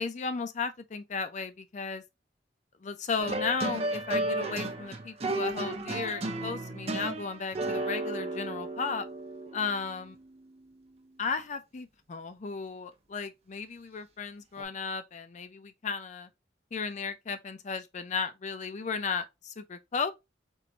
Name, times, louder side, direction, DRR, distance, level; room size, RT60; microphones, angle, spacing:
voice 1, 0.0-2.0 2.8-9.1 9.5-10.2 11.2-16.3 16.7-20.1, left 5 dB, 40° left, 0.5 m, -35 dB
sound 1, 3.2-10.0 14.6-14.7, right 2 dB, 35° right, 0.6 m, -33 dB
4.5 x 2.6 x 2.9 m
head